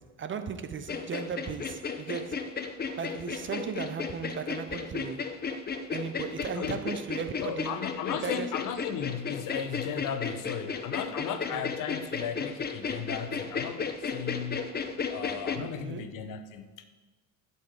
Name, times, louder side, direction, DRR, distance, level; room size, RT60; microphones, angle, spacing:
voice 1, 0.0-2.4 3.0-5.3 5.9-7.8 8.2-8.5 11.3-11.6 15.5-16.1, right 6 dB, 35° right, 0.8 m, -36 dB
sound 1, 0.9-15.6, left 5 dB, 25° left, 1.1 m, -34 dB
voice 2, 7.4-14.6 15.1-16.8, left 8 dB, 60° left, 1.3 m, -36 dB
8.4 x 7.1 x 8.2 m
supercardioid pair, 85°, 36 cm